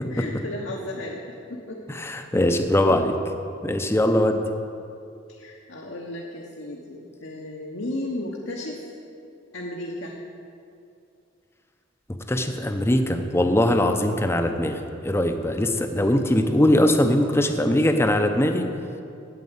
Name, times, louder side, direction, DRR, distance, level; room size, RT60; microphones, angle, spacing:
voice 1, 0.1-1.2 1.5-1.8 5.3-8.9 9.5-10.2 15.9-16.5, left 1 dB, 70° left, -1 dB, 1.1 m, -34 dB
voice 2, 1.9-3.1 3.6-4.4 12.3-18.7, left 1 dB, 15° left, 6 dB, 0.7 m, -21 dB
9.4 x 8.3 x 8.0 m, 2.5 s
head